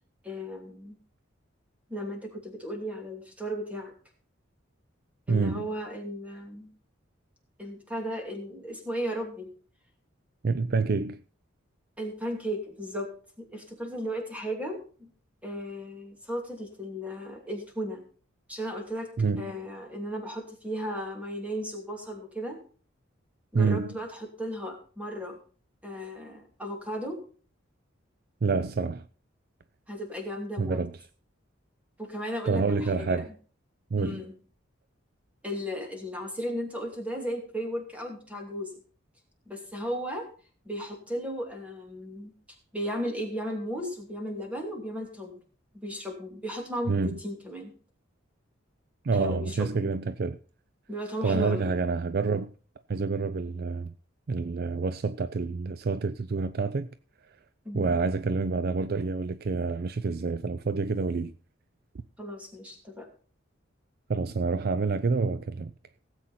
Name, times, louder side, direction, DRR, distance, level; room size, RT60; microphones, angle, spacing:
voice 1, 0.2-1.0 1.9-3.9 5.3-6.7 7.6-9.5 12.0-13.1 13.4-15.1 15.4-18.0 18.5-19.1 19.4-22.6 23.5-25.4 25.8-27.2 29.9-30.8 32.0-33.2 34.0-34.3 35.4-38.7 39.5-40.2 40.6-42.3 42.7-45.4 45.7-47.7 49.1-49.9 50.9-51.7 57.6-58.0 62.2-63.1, equal, 5° right, 2.7 m, -35 dB
voice 2, 5.3-5.7 10.4-11.2 19.2-19.5 23.5-23.9 28.4-29.1 30.6-31.0 32.5-33.3 33.9-34.2 46.9-47.2 49.0-50.4 51.2-52.5 52.9-53.9 54.3-56.9 57.7-61.3 64.1-65.7, right 4 dB, 50° right, 0.5 m, -27 dB
17.0 x 7.9 x 4.3 m
head